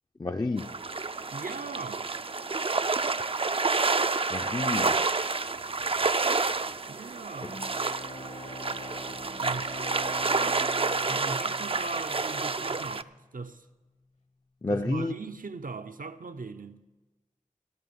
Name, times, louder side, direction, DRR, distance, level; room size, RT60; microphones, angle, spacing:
voice 1, 0.2-0.7 4.3-5.0 14.6-15.1, left 2 dB, 30° left, 0.4 m, -30 dB
sound 1, 0.6-13.0, right 3 dB, 40° right, 0.4 m, -29 dB
voice 2, 1.3-2.1 6.9-7.6 9.4-9.9 11.1-13.7 14.7-16.8, right 4 dB, 80° right, 0.7 m, -39 dB
Bowed string instrument, 7.4-12.7, left 1 dB, 55° left, 0.9 m, -44 dB
16.5 x 8.2 x 7.0 m
wide cardioid pair, 50°, 14 cm